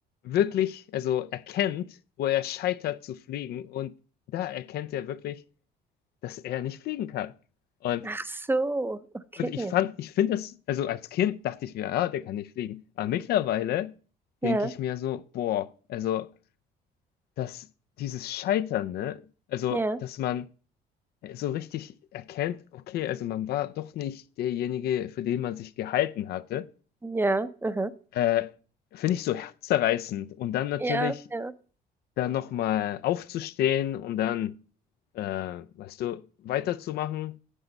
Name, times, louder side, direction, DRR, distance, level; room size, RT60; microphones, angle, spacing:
voice 1, 0.2-1.9 2.2-3.9 4.3-5.4 6.2-7.3 7.8-8.1 9.4-13.9 14.4-16.3 17.4-17.6 18.0-19.2 19.5-20.5 21.2-26.7 28.1-28.5 28.9-31.2 32.2-34.6 35.1-37.3, left 12 dB, 70° left, 0.5 m, -29 dB
voice 2, 8.0-9.0 9.6-9.7 14.4-14.7 19.7-20.0 27.0-27.9 30.8-31.5, right 2 dB, 10° right, 0.6 m, -28 dB
9.9 x 8.0 x 5.3 m
cardioid pair, 110°, 17 cm